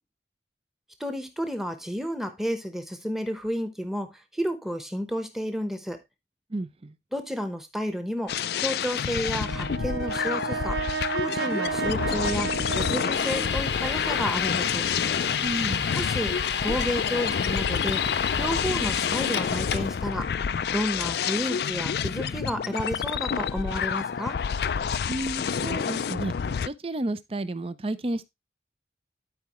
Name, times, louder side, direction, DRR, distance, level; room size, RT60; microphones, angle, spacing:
voice 1, 1.0-6.0 7.1-10.8 11.2-12.5 12.7-14.9 15.9-16.4 16.6-18.0 18.4-20.3 20.7-24.4, equal, ahead, 1.0 m, -31 dB
voice 2, 6.5-6.9 15.4-15.9 25.0-26.3 26.6-28.3, right 1 dB, 35° right, 0.5 m, -31 dB
sound 1, 8.3-26.7, left 7 dB, 60° left, 0.3 m, -29 dB
Brass instrument, 9.3-13.8, right 6 dB, 85° right, 0.6 m, -32 dB
sound 2, 13.1-20.0, left 7 dB, 80° left, 0.8 m, -30 dB
12.0 x 4.7 x 3.0 m
head